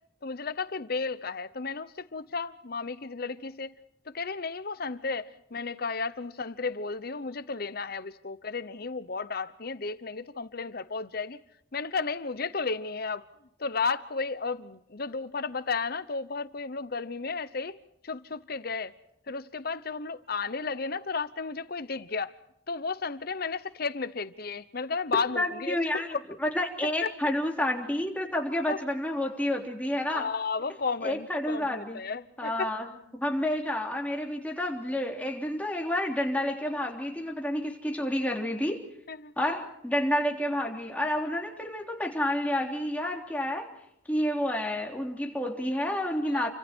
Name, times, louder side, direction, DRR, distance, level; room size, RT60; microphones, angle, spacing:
voice 1, 0.2-3.7 4.1-11.4 11.7-13.3 13.6-17.8 18.0-18.9 19.3-22.3 22.7-25.8 26.1-26.2 27.0-27.1 28.7-28.8 30.1-32.7 39.1-39.3 46.3-46.5, left 4 dB, 55° left, 0.9 m, -33 dB
voice 2, 25.3-30.3 31.0-32.0 32.4-38.9 39.4-43.7 44.1-46.5, left 1 dB, 10° left, 3.4 m, -30 dB
29.5 x 25.0 x 4.5 m
head